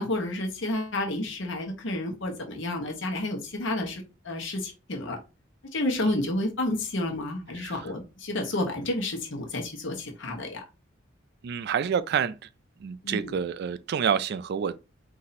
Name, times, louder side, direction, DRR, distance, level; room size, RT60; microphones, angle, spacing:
voice 1, 0.0-5.2 5.7-10.6 13.0-13.3, left 1 dB, 65° left, 1.0 m, -30 dB
voice 2, 7.5-7.9 11.4-12.5 12.8-14.8, right 7 dB, 55° right, 0.3 m, -28 dB
4.2 x 2.7 x 4.0 m
head